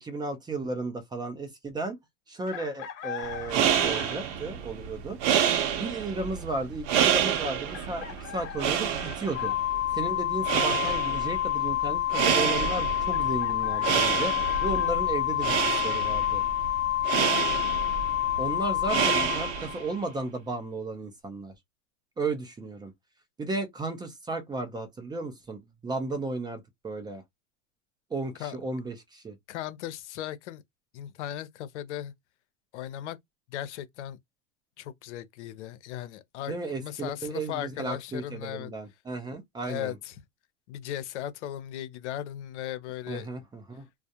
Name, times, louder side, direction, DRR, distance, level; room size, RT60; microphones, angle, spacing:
voice 1, 0.0-2.0 2.3-5.2 5.7-9.5 9.9-16.4 18.4-21.5 22.2-22.9 23.4-27.2 28.1-29.4 36.5-40.0 43.1-43.9, right 3 dB, 10° right, 0.5 m, -34 dB
Chicken rooster, 2.5-4.4 6.1-6.2 7.7-9.6 13.1-14.9, left 9 dB, 55° left, 1.0 m, -42 dB
sound 1, 3.3-19.9, right 9 dB, 55° right, 0.7 m, -29 dB
Organ, 9.3-20.1, left 14 dB, 40° left, 0.7 m, -28 dB
voice 2, 29.5-30.6 30.9-32.1 32.7-33.2 33.5-34.2 34.8-38.7 39.6-40.2 40.7-43.3, left 12 dB, 80° left, 0.7 m, -37 dB
2.4 x 2.0 x 2.7 m
supercardioid pair, 125°, 35 cm